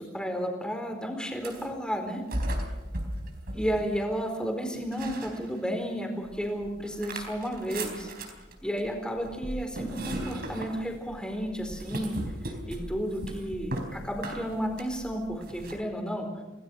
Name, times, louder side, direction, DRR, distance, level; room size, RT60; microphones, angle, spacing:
voice 1, 0.0-2.2 3.5-8.1 8.6-16.3, equal, 5° left, 3 dB, 4.4 m, -32 dB
sound 1, 1.3-1.8 2.3-4.3 4.7-5.9 6.3-15.8, right 1 dB, 50° right, 4.2 m, -37 dB
27.5 x 18.5 x 6.3 m, 1.1 s
head